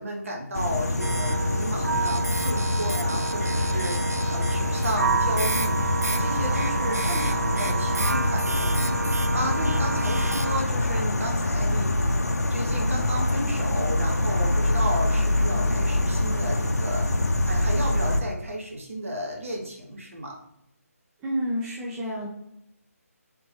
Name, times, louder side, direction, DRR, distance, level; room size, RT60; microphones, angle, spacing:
voice 1, 0.0-8.8 9.3-17.1 17.4-20.4, equal, 60° right, -1 dB, 1.0 m, -33 dB
sound 1, 0.5-18.2, left 2 dB, 80° left, 0.5 m, -25 dB
sound 2, 1.0-10.6, right 4 dB, 80° right, 0.4 m, -29 dB
voice 2, 21.2-22.3, equal, 5° right, -5 dB, 0.3 m, -29 dB
3.5 x 2.9 x 3.1 m, 0.79 s
figure-of-eight pair, 150°, 8 cm